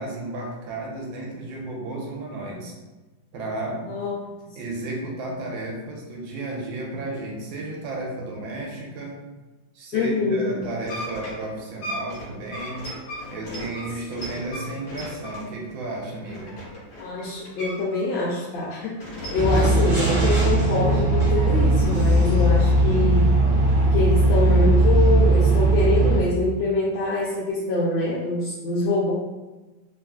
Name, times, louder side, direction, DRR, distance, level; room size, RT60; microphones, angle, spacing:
voice 1, 0.0-2.8 3.3-3.8 4.6-9.2 9.7-12.8 13.3-16.6, right 2 dB, 85° right, -1 dB, 1.4 m, -33 dB
voice 2, 3.9-4.3 9.9-10.6 17.0-23.3 23.9-29.1, left 2 dB, 80° left, -6 dB, 1.3 m, -25 dB
sound 1, 10.6-18.0 18.3-19.8 20.2-22.1, equal, 65° left, 1.3 m, -37 dB
sound 2, 19.3-26.2, right 2 dB, 45° right, 0.6 m, -18 dB
3.3 x 2.4 x 2.3 m, 1.2 s
omnidirectional pair, 2.1 m